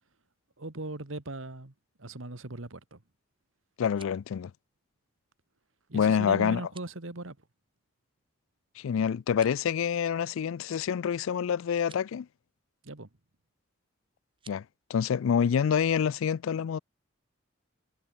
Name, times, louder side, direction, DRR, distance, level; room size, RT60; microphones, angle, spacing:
voice 1, 0.6-1.7 2.0-3.0 5.9-7.4 12.8-13.1, right 2 dB, 75° right, 1.8 m, -39 dB
sound 1, 3.7-4.3 6.6-7.0 9.2-9.7 11.7-12.1 14.3-14.6, right 7 dB, 25° right, 6.7 m, -55 dB
voice 2, 3.8-4.5 5.9-6.6 8.8-12.3 14.5-14.6 14.9-16.8, left 7 dB, 80° left, 0.3 m, -27 dB
head